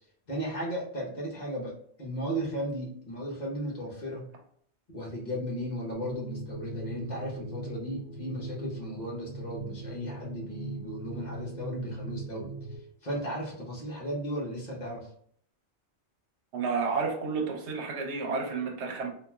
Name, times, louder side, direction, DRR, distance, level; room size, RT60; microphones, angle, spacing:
voice 1, 0.3-4.2 4.9-12.5 13.0-15.1, equal, 45° left, -4 dB, 1.0 m, -35 dB
sound 1, 5.9-12.8, right 2 dB, 55° right, 0.9 m, -40 dB
voice 2, 16.5-19.1, right 4 dB, 85° right, 1 dB, 1.0 m, -31 dB
3.8 x 2.5 x 2.3 m, 0.62 s
omnidirectional pair, 1.1 m